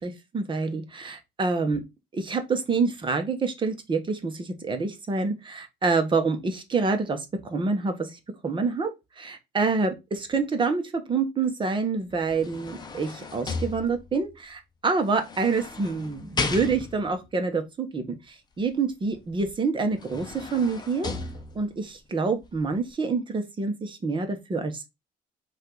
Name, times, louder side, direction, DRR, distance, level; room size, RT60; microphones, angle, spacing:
voice 1, 0.0-1.8 2.1-8.9 9.2-21.1 21.5-24.9, right 4 dB, 30° right, 1.0 m, -27 dB
sound 1, 12.1-14.3 15.2-17.2 19.4-19.5 19.9-21.9 22.4-22.6, left 4 dB, 25° left, 0.8 m, -35 dB
5.2 x 2.6 x 3.8 m
cardioid pair, 110°, 17 cm